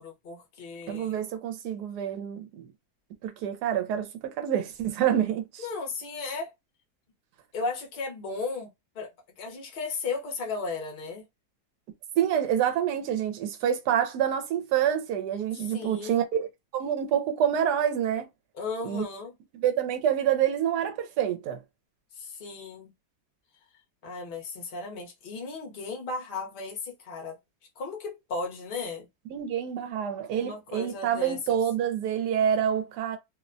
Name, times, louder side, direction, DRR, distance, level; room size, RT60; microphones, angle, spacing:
voice 1, 0.0-1.2 5.6-6.5 7.5-9.1 9.4-11.2 15.6-16.2 18.5-19.3 22.1-22.9 24.0-27.4 27.8-29.1 30.3-31.6, left 3 dB, 45° left, 0.7 m, -35 dB
voice 2, 0.9-2.7 3.2-5.6 12.2-16.5 16.7-18.3 18.8-19.1 19.6-21.6 29.3-33.2, right 9 dB, 85° right, 1.2 m, -27 dB
2.8 x 2.1 x 2.5 m
omnidirectional pair, 1.7 m